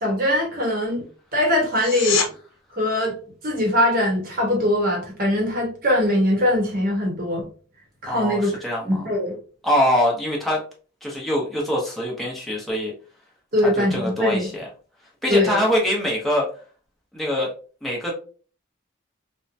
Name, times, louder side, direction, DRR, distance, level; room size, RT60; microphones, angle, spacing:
voice 1, 0.0-2.2 2.8-7.5 8.0-8.6 8.8-9.4 13.5-14.5 15.3-15.6, left 1 dB, 45° right, 0.9 m, -22 dB
sound 1, 1.7-2.3 13.7-13.8, left 7 dB, 75° left, 0.6 m, -24 dB
voice 2, 8.1-9.1 9.6-10.6 11.0-12.9 13.6-14.7 15.2-16.5 17.1-17.5 17.8-18.1, equal, ahead, 0.8 m, -23 dB
2.9 x 2.1 x 2.5 m
head